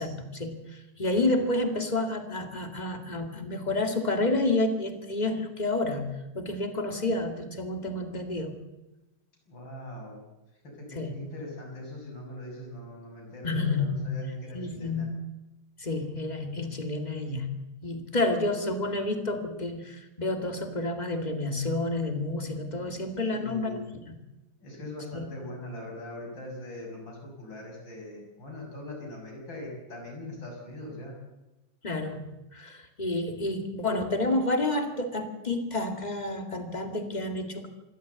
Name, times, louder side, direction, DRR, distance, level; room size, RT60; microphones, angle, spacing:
voice 1, 0.0-8.6 11.0-11.1 13.4-14.1 14.5-15.2 15.8-17.6 17.8-23.8 24.1-24.2 25.1-25.3 31.8-37.7, left 2 dB, 20° left, 6 dB, 2.3 m, -30 dB
voice 2, 9.5-10.3 10.6-15.1 23.3-23.9 24.6-31.1, left 1 dB, 80° left, 0 dB, 7.4 m, -41 dB
26.5 x 12.5 x 8.2 m, 1.0 s
omnidirectional pair, 2.1 m